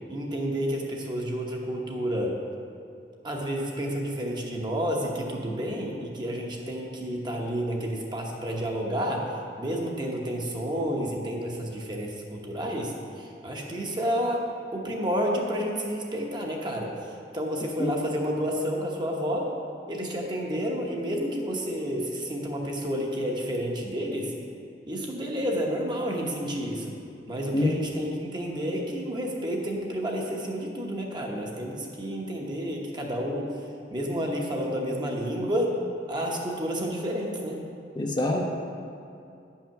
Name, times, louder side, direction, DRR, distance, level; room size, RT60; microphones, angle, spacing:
voice 1, 0.1-2.4 3.2-19.5 19.9-24.3 24.9-26.9 27.3-33.5 33.9-35.7 36.1-37.6, equal, 25° right, -1 dB, 1.0 m, -30 dB
voice 2, 38.0-38.4, left 2 dB, 25° left, 0 dB, 0.7 m, -25 dB
9.4 x 5.7 x 5.8 m, 2.6 s
head